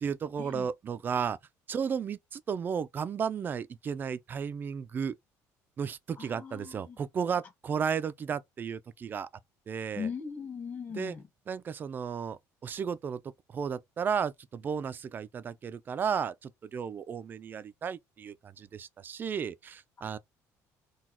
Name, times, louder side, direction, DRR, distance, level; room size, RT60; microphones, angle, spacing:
voice 1, 0.0-1.4 1.7-5.2 5.8-9.3 9.7-10.1 11.0-11.1 11.5-13.2 13.5-20.2, right 7 dB, 30° right, 0.4 m, -34 dB
voice 2, 6.2-7.0 10.0-11.3, left 6 dB, 30° left, 1.5 m, -39 dB
4.1 x 2.3 x 4.3 m
cardioid pair, 145°, 6 cm